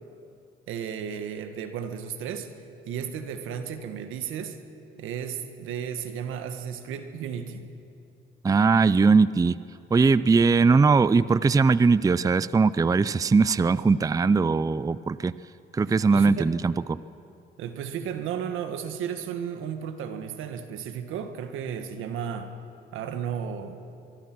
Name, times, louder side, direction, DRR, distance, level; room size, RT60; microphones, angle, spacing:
voice 1, 0.7-2.5 2.9-4.6 5.0-7.7 15.9-16.5 17.6-22.5 22.9-23.8, right 8 dB, 90° right, 8 dB, 1.6 m, -34 dB
voice 2, 8.4-9.6 9.9-15.3 15.7-17.0, right 4 dB, 15° right, 17 dB, 0.4 m, -20 dB
23.5 x 23.0 x 6.1 m, 2.6 s
cardioid pair, 90°, 20 cm